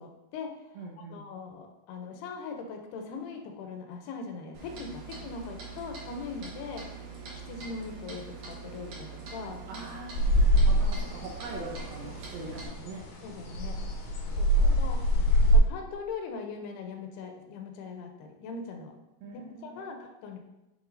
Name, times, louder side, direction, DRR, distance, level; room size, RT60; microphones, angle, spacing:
voice 1, 0.0-0.6 1.0-6.9 7.3-9.6 13.2-13.8 14.4-14.5 14.7-15.0 15.5-19.0 19.6-20.4, left 4 dB, 80° left, 4 dB, 2.6 m, -40 dB
voice 2, 0.8-1.2 9.7-13.1 14.2-14.8 15.2-15.6 19.2-20.0, right 2 dB, 75° right, 0 dB, 2.4 m, -43 dB
Clock, 4.5-12.7, right 5 dB, 55° right, 2.2 m, -43 dB
sound 1, 10.1-15.6, equal, 60° left, 2.6 m, -25 dB
7.9 x 6.7 x 2.6 m, 0.96 s
omnidirectional pair, 4.9 m